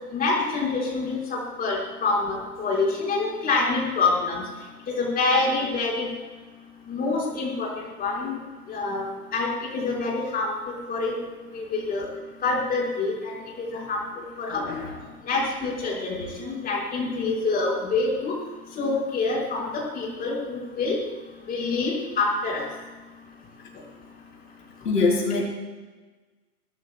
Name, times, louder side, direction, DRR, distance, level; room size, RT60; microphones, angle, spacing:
voice 1, 0.1-4.4 5.0-6.1 6.9-7.7 8.0-8.4 8.7-11.1 11.5-12.1 12.4-14.0 14.4-14.6 15.3-18.3 18.8-20.9 21.5-22.6, left 3 dB, 20° left, -3 dB, 5.7 m, -26 dB
voice 2, 14.5-15.0 24.8-25.4, left 3 dB, 80° left, -3 dB, 4.6 m, -24 dB
25.5 x 14.0 x 2.4 m, 1.3 s
hypercardioid pair, 125°, 46 cm